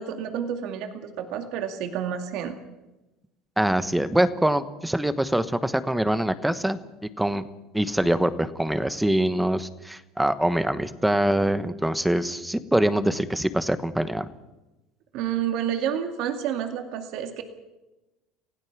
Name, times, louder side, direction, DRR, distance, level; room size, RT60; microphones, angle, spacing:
voice 1, 0.0-2.6 15.1-17.4, right 9 dB, 55° right, 6 dB, 2.3 m, -29 dB
voice 2, 3.6-6.8 7.2-7.4 7.7-14.3, right 1 dB, 5° right, 12 dB, 1.1 m, -24 dB
29.0 x 16.5 x 6.1 m, 1.0 s
cardioid pair, 145°, 0 cm